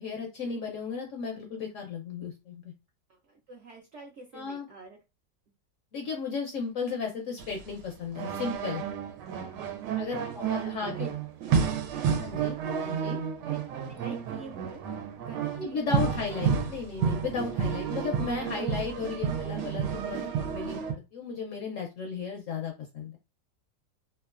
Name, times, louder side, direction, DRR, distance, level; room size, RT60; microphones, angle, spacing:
voice 1, 0.0-2.7 4.3-4.7 5.9-8.8 10.0-11.1 12.2-13.2 15.5-23.2, left 5 dB, 70° left, 1 dB, 0.7 m, -35 dB
voice 2, 3.1-5.0 9.8-11.1 11.9-12.1 13.5-13.6 13.9-14.9 15.3-16.1, right 3 dB, 70° right, 0 dB, 0.7 m, -47 dB
sound 1, 7.4-20.9, right 7 dB, 85° right, 1.2 m, -31 dB
2.9 x 2.1 x 2.4 m, 0.25 s
omnidirectional pair, 1.8 m